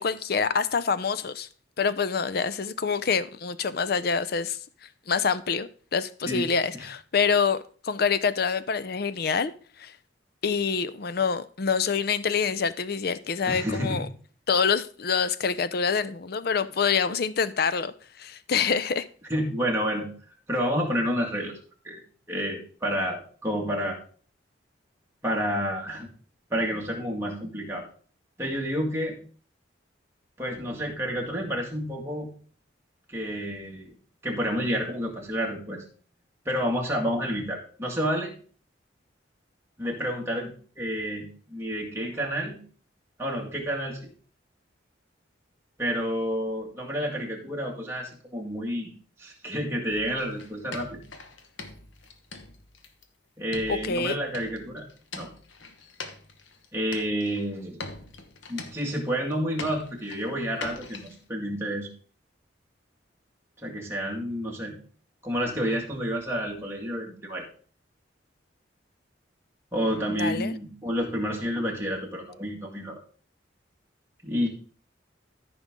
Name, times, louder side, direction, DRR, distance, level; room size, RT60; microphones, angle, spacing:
voice 1, 0.0-1.5 1.8-4.6 5.1-9.5 9.8-10.0 10.4-14.1 14.5-19.1 53.7-54.2 70.0-70.5, left 6 dB, 55° left, 0.5 m, -26 dB
voice 2, 13.5-14.1 19.3-20.1 20.5-21.6 21.8-22.0 22.3-24.0 25.2-26.1 26.5-27.8 28.4-29.2 30.4-32.3 33.1-33.9 34.2-35.8 36.5-38.3 39.8-42.6 43.2-44.0 45.8-48.9 49.2-51.0 53.4-54.9 55.1-55.3 56.7-57.8 58.5-61.9 63.6-64.8 65.2-67.4 69.7-73.0 74.2-74.5, equal, 15° right, 2.0 m, -29 dB
sound 1, 49.9-53.0 53.5-56.7 56.9-57.5 57.8-59.3 59.6-61.2, left 3 dB, 85° left, 1.1 m, -42 dB
13.5 x 5.2 x 3.6 m
head